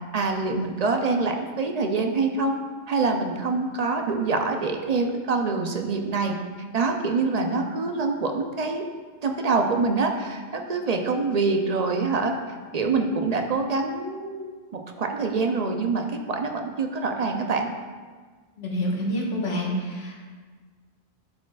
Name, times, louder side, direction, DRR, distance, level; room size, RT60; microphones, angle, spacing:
voice 1, 0.1-2.6 2.9-6.4 6.7-8.8 9.2-12.3 12.7-17.7, right 4 dB, 50° right, 4 dB, 0.5 m, -25 dB
voice 2, 18.6-20.2, equal, 85° left, -3 dB, 1.5 m, -27 dB
11.0 x 4.7 x 2.3 m, 1.5 s
omnidirectional pair, 1.0 m